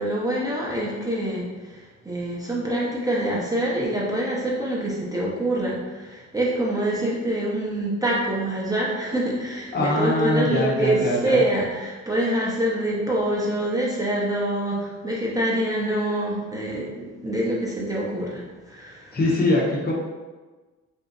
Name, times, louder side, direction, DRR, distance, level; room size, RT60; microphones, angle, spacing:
voice 1, 0.0-19.2, right 1 dB, 10° right, -6 dB, 0.6 m, -25 dB
voice 2, 9.7-11.4 19.1-19.9, left 1 dB, 30° left, -4 dB, 0.7 m, -22 dB
2.6 x 2.0 x 3.7 m, 1.3 s
cardioid pair, 90°, 30 cm